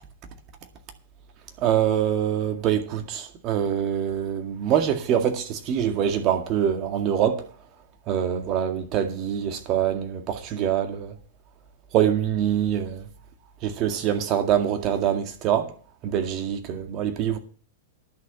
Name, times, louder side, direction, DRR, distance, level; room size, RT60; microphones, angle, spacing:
voice 1, 1.6-7.4 8.1-11.1 11.9-13.1 13.6-15.7 16.0-17.4, right 9 dB, 40° right, 2.0 m, -24 dB
11.0 x 6.5 x 8.3 m
figure-of-eight pair, 100°, 0 cm